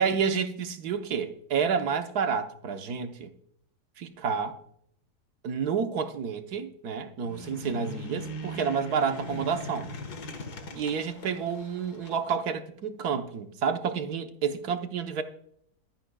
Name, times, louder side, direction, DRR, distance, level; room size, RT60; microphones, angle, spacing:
voice 1, 0.0-3.3 4.0-4.6 5.4-9.9 10.7-15.2, right 6 dB, 70° right, 1.5 m, -29 dB
sound 1, 7.2-12.2, left 1 dB, 70° left, 2.1 m, -40 dB
22.5 x 10.0 x 2.3 m
omnidirectional pair, 1.7 m